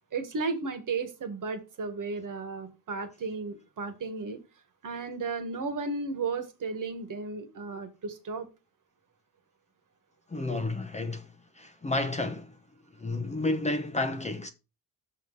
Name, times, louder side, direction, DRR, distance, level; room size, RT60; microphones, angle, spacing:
voice 1, 0.1-4.4 4.8-8.5, right 4 dB, 50° right, 1.5 m, -34 dB
voice 2, 10.3-12.6 13.0-14.5, left 2 dB, 15° left, 0.7 m, -31 dB
6.4 x 5.0 x 5.5 m
cardioid pair, 120°, 41 cm